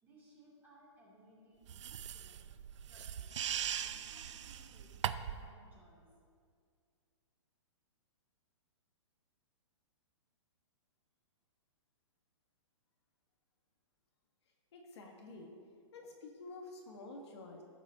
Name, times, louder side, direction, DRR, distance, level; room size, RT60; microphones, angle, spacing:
voice 1, 0.0-3.3 3.8-5.0 5.3-6.1, right 1 dB, 10° right, -6 dB, 2.7 m, -63 dB
sound 1, 1.7-5.5, right 9 dB, 70° right, 0.4 m, -40 dB
voice 2, 14.7-15.5 15.9-17.6, left 2 dB, 60° left, 1 dB, 1.4 m, -50 dB
16.5 x 7.9 x 2.8 m, 2.2 s
hypercardioid pair, 160°, 16 cm